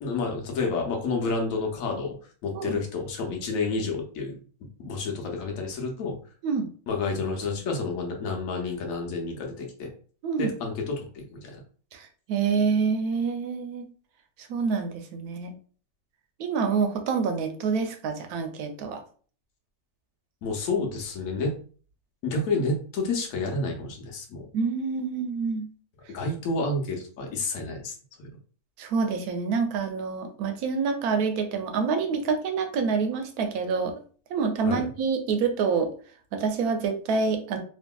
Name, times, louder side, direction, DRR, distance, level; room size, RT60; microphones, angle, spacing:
voice 1, 0.0-2.1 2.4-4.4 4.8-6.2 6.9-9.9 10.4-11.5 20.4-21.6 22.2-24.4 26.1-28.3 34.6-34.8, left 3 dB, 70° left, 2 dB, 1.1 m, -29 dB
voice 2, 11.9-13.9 14.5-15.5 16.4-19.0 24.5-25.7 28.8-33.9 34.3-35.9 36.3-37.6, right 5 dB, 85° right, 6 dB, 1.1 m, -27 dB
2.8 x 2.5 x 2.2 m, 0.42 s
omnidirectional pair, 1.6 m